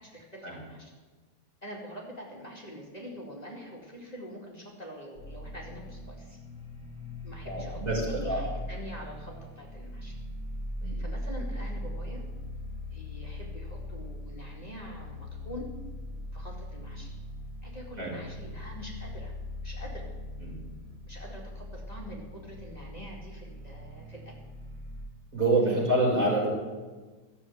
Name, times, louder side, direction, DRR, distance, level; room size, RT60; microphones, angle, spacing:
voice 1, 0.0-0.9 1.6-6.4 7.2-7.8 8.1-10.1 11.0-12.2 12.9-15.7 16.3-17.1 17.6-19.3 19.6-20.1 21.0-24.3 25.7-25.9, equal, 25° left, -3 dB, 2.5 m, -45 dB
sound 1, 5.1-25.0, left 1 dB, 15° right, 5.7 m, -40 dB
voice 2, 7.4-8.4 10.8-11.0 18.0-18.1 20.4-20.5 25.3-26.5, right 2 dB, 50° right, -3 dB, 5.5 m, -26 dB
13.5 x 7.8 x 9.4 m, 1.3 s
omnidirectional pair, 1.8 m